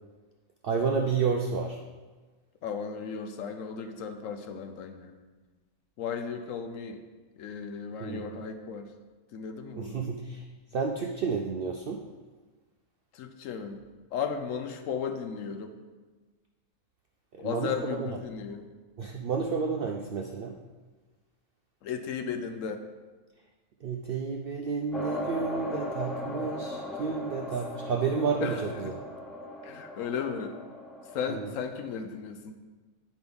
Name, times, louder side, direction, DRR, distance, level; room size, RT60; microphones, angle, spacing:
voice 1, 0.6-1.8 8.0-8.4 9.8-10.5 10.7-12.1 17.3-18.2 19.0-20.6 23.8-28.9 31.3-31.5, right 5 dB, 70° right, 3 dB, 0.5 m, -31 dB
voice 2, 2.6-5.1 6.0-7.0 7.4-8.9 9.3-10.1 13.1-13.8 14.1-15.8 17.4-18.7 21.8-22.8 28.4-28.6 29.6-30.5 31.1-32.5, left 6 dB, 70° left, 7 dB, 0.9 m, -35 dB
sound 1, 24.9-31.7, left 1 dB, ahead, 0.3 m, -38 dB
9.4 x 5.1 x 3.5 m, 1.3 s
omnidirectional pair, 1.5 m